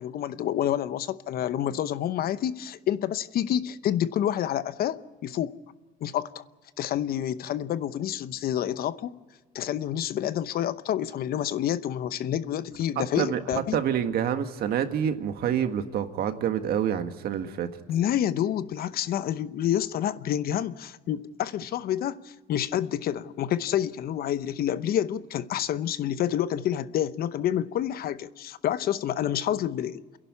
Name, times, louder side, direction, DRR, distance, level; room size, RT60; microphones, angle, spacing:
voice 1, 0.0-5.5 6.0-6.4 6.8-9.1 9.5-13.8 17.9-30.0, left 11 dB, 65° left, 0.9 m, -28 dB
voice 2, 13.0-13.4 13.7-17.7, right 9 dB, 65° right, 1.7 m, -27 dB
29.0 x 11.5 x 9.7 m
cardioid pair, 110°, 17 cm